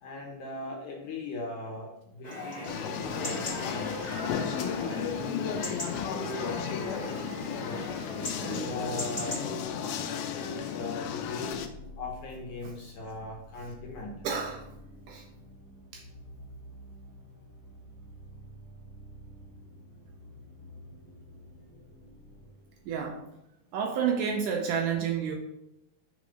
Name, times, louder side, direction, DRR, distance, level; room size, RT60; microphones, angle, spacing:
voice 1, 0.0-4.0 4.6-7.9 8.4-11.6 12.0-14.2 20.6-20.7, left 2 dB, 70° left, 0 dB, 2.0 m, -39 dB
Chatter / Livestock farm animals working animals / Chirp tweet, 2.2-9.4, left 1 dB, 15° left, 1.7 m, -38 dB
sound 1, 2.7-11.7, left 8 dB, 85° left, 2.5 m, -34 dB
sound 2, 11.5-23.4, equal, 50° right, 1.9 m, -50 dB
voice 2, 14.2-14.6 15.1-15.3 15.9-16.0 22.9-23.3 23.7-25.4, right 7 dB, 75° right, 1 dB, 2.0 m, -30 dB
6.3 x 4.0 x 4.9 m, 0.84 s
omnidirectional pair, 4.2 m